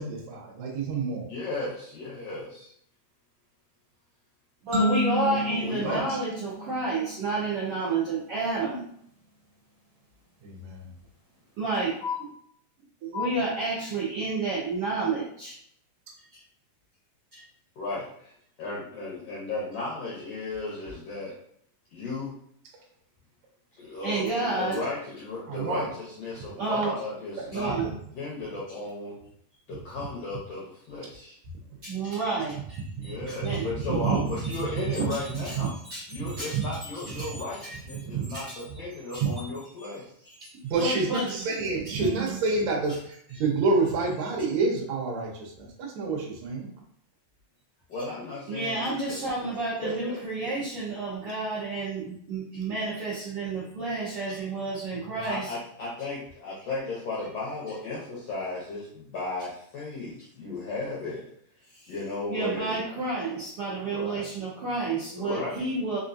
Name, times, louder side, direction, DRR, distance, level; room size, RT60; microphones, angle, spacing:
voice 1, 0.0-1.3 5.8-6.0 10.4-10.9 25.5-25.9 40.6-46.7 55.1-55.3, right 3 dB, 70° right, -1 dB, 1.9 m, -28 dB
voice 2, 1.3-2.7 5.2-6.1 17.8-18.3 18.6-21.3 21.9-22.3 23.7-29.2 29.7-31.4 33.0-34.2 34.5-35.7 36.1-40.1 47.9-49.2 49.8-50.2 50.4-50.5 55.2-61.2 61.9-62.8 63.8-64.3 65.2-65.6, left 2 dB, 75° left, -6 dB, 1.4 m, -35 dB
voice 3, 4.6-8.9 11.6-12.3 13.0-15.6 16.3-16.4 17.3-17.4 24.0-24.8 26.6-26.9 27.5-27.9 31.8-38.8 39.1-39.5 39.8-39.9 40.4-40.5 40.8-41.4 41.8-42.4 48.5-55.5 61.7-61.9 62.3-66.0, right 3 dB, 90° right, -8 dB, 1.2 m, -30 dB
sound 1, 4.7-7.4, left 2 dB, 45° right, 1.2 m, -30 dB
5.2 x 2.5 x 2.6 m, 0.67 s
omnidirectional pair, 3.9 m